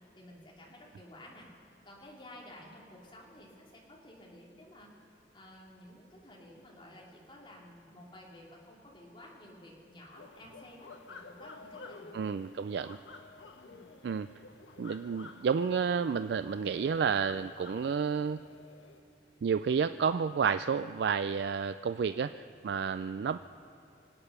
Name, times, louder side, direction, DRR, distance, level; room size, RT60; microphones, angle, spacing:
voice 1, 0.1-1.5 1.8-4.9 5.3-12.8 13.6-13.8, left 1 dB, 25° left, -3 dB, 2.9 m, -53 dB
sound 1, 10.1-19.0, left 3 dB, 85° left, 1.1 m, -51 dB
voice 2, 12.1-13.0 14.0-14.3 14.8-18.4 19.4-23.4, right 6 dB, 65° right, 11 dB, 0.3 m, -30 dB
24.5 x 8.9 x 6.7 m, 2.7 s
head